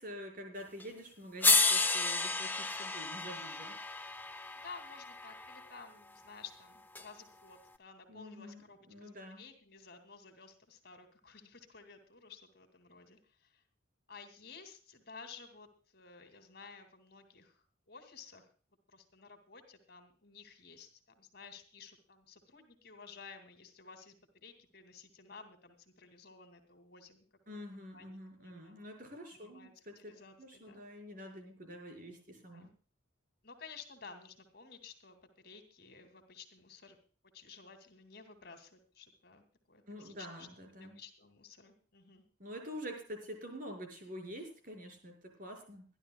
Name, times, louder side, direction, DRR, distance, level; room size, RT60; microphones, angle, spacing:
voice 1, 0.0-3.8 8.1-8.6 8.9-9.5 27.5-30.1 30.4-32.7 39.9-41.0 42.4-45.8, equal, 45° right, 2 dB, 5.2 m, -47 dB
sound 1, 0.8-0.9 1.4-5.6 7.0-7.1, left 3 dB, 10° left, 0.6 m, -31 dB
voice 2, 4.5-13.6 14.1-18.5 18.9-27.2 27.7-28.9 29.3-30.8 32.5-32.7 33.4-37.0 37.3-40.5 40.8-42.2, left 5 dB, 50° left, 8 dB, 2.5 m, -54 dB
25.0 x 12.0 x 2.3 m, 0.39 s
head